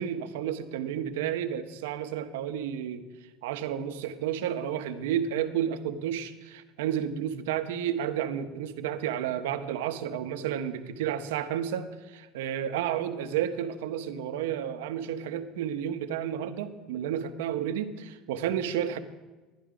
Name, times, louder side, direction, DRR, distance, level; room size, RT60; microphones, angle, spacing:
voice 1, 0.0-3.0 3.4-19.0, right 9 dB, 85° right, 10 dB, 0.9 m, -31 dB
11.5 x 11.0 x 5.1 m, 1.2 s
supercardioid pair, 100°, 0 cm